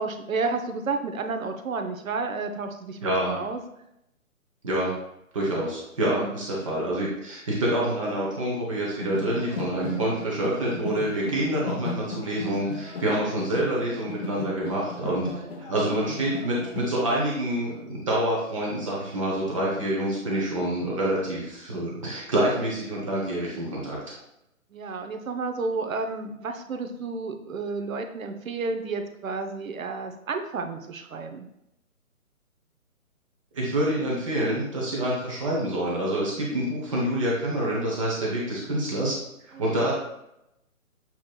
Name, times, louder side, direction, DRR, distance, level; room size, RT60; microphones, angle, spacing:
voice 1, 0.0-3.6 6.0-6.4 9.5-9.6 15.3-15.5 24.7-31.5 36.4-36.6 39.5-39.7, right 4 dB, 70° right, 6 dB, 0.7 m, -31 dB
voice 2, 3.0-3.4 4.6-4.9 5.3-15.3 15.7-24.2 33.5-39.2 39.4-39.9, right 1 dB, 25° right, -4 dB, 0.8 m, -27 dB
sound 1, 9.0-16.9, left 3 dB, 45° left, 0.7 m, -36 dB
7.0 x 3.0 x 2.2 m, 0.84 s
hypercardioid pair, 150°, 42 cm